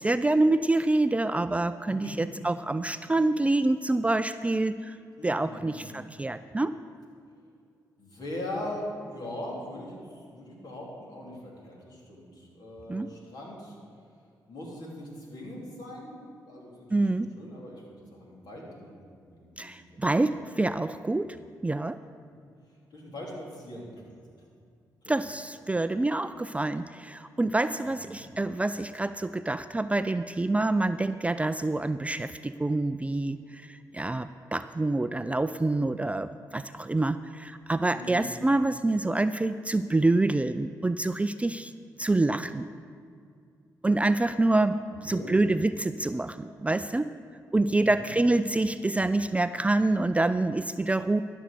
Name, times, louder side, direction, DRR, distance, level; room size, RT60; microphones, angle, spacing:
voice 1, 0.0-5.0 5.2-6.7 12.9-13.1 16.9-17.3 19.6-21.4 21.6-22.0 25.1-41.7 42.0-42.7 43.8-47.1 47.5-51.2, right 2 dB, 15° right, 12 dB, 0.4 m, -26 dB
voice 2, 1.9-2.3 5.2-5.8 8.0-13.8 14.5-16.9 17.1-17.8 18.1-20.4 22.3-22.4 22.9-24.2 25.0-25.2 27.8-28.3 37.9-38.3 44.9-45.7 47.6-48.2, left 1 dB, 60° left, -3 dB, 3.4 m, -41 dB
12.5 x 6.4 x 6.8 m, 2.3 s
supercardioid pair, 50°, 8 cm